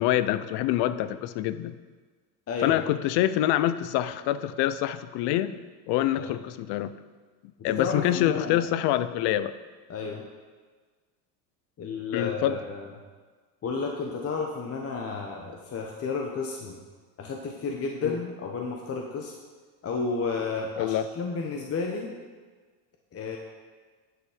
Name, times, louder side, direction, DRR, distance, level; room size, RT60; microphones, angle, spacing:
voice 1, 0.0-1.7 2.6-5.5 5.9-6.9 7.6-9.5 12.1-12.6 18.0-18.2 20.8-21.1, left 13 dB, 60° left, 14 dB, 0.7 m, -26 dB
voice 2, 2.5-2.8 6.2-6.3 7.6-8.6 9.9-10.3 11.8-12.9 13.6-16.8 17.2-19.3 19.8-22.1 23.1-23.4, left 4 dB, 30° left, 1 dB, 1.1 m, -32 dB
10.5 x 7.6 x 5.0 m, 1.4 s
supercardioid pair, 105°, 46 cm